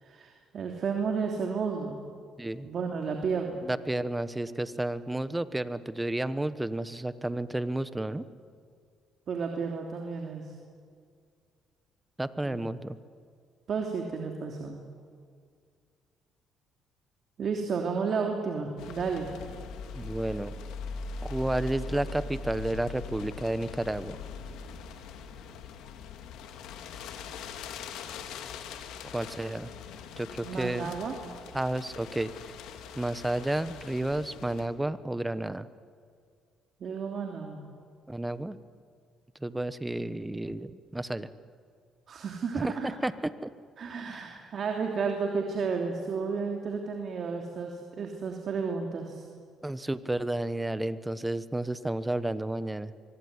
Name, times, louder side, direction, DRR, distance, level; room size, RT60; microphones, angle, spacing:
voice 1, 0.0-2.0 2.6-3.7 9.3-10.5 12.4-12.6 13.7-14.8 17.4-19.3 30.4-31.1 36.8-37.6 42.1-42.9 43.8-49.3, right 5 dB, 50° right, 2 dB, 3.1 m, -32 dB
voice 2, 3.6-8.3 12.2-13.0 19.9-20.5 21.2-24.2 29.1-29.7 30.2-30.9 31.5-32.5 32.9-35.7 38.1-38.6 39.4-41.3 42.5-43.5 44.1-44.5 49.6-52.9, right 1 dB, 10° right, 14 dB, 1.2 m, -31 dB
sound 1, 18.8-34.7, left 5 dB, 80° left, 2.5 m, -41 dB
24.5 x 23.5 x 9.8 m, 2.1 s
cardioid pair, 95°, 0 cm